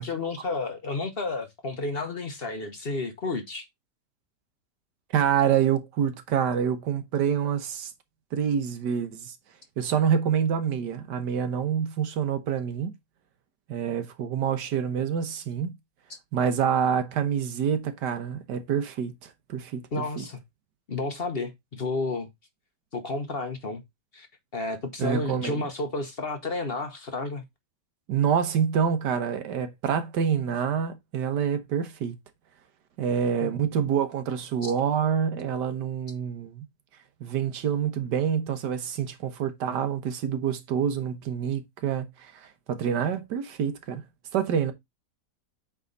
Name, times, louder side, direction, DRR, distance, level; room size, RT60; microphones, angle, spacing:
voice 1, 0.0-3.6 19.9-20.4 20.9-22.3 22.9-23.8 24.1-24.3 24.5-27.4 33.4-33.5, left 3 dB, 40° left, 1.1 m, -31 dB
voice 2, 5.1-7.9 8.3-9.3 9.8-12.9 13.7-15.8 16.3-19.8 20.2-20.3 25.0-25.6 28.1-32.2 33.0-36.7 37.2-44.0 44.3-44.7, right 8 dB, 90° right, 1.6 m, -27 dB
8.2 x 3.7 x 3.9 m
omnidirectional pair, 1.8 m